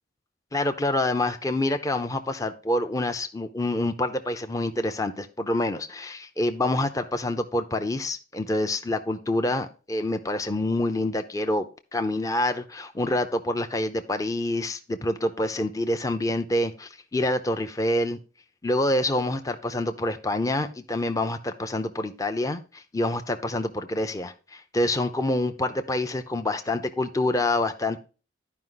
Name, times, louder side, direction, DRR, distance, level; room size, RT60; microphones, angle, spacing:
voice 1, 0.5-11.6 11.9-18.2 18.6-28.0, left 1 dB, 20° left, 7 dB, 0.5 m, -27 dB
11.0 x 5.1 x 3.9 m, 0.34 s
head